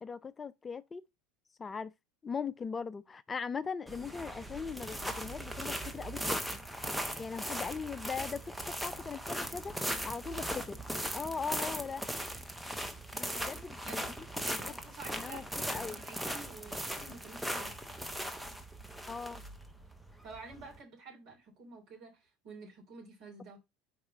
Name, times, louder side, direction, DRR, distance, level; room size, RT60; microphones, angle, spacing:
voice 1, 0.0-1.0 1.6-1.9 2.2-6.6 7.2-8.5 8.8-10.8 11.1-12.0 13.1-14.0 14.5-14.7 15.2-16.0 19.1-19.4, left 5 dB, 25° left, 0.3 m, -39 dB
sound 1, 3.9-20.8, equal, ahead, 0.8 m, -39 dB
voice 2, 13.2-13.5 13.8-17.9 20.2-23.6, right 3 dB, 50° right, 3.3 m, -50 dB
4.8 x 4.6 x 5.2 m
figure-of-eight pair, 70°, 0 cm